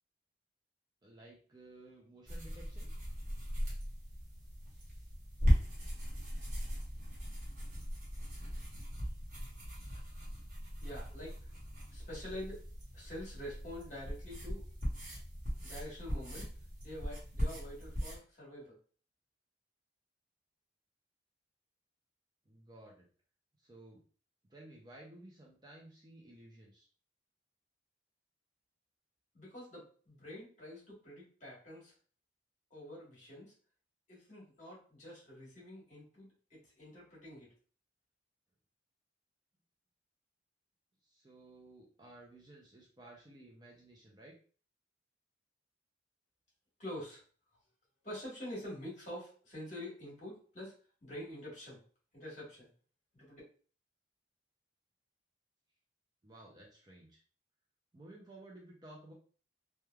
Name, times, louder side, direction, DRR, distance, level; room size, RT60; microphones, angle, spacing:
voice 1, 1.0-2.9 22.5-23.1 23.6-24.0 24.5-26.9 41.0-44.4 56.2-57.2 57.9-59.1, right 1 dB, 20° right, -2 dB, 0.5 m, -55 dB
sound 1, 2.3-18.2, equal, 45° right, 1.1 m, -38 dB
voice 2, 10.8-11.5 11.9-12.6 12.9-14.6 15.6-16.4 16.8-18.7 29.3-31.9 32.7-33.5 34.1-37.5 46.8-47.2 48.0-50.7 51.0-51.8 52.1-52.7 53.1-53.4, left 1 dB, 40° left, -4 dB, 1.4 m, -46 dB
3.1 x 2.2 x 2.3 m, 0.41 s
head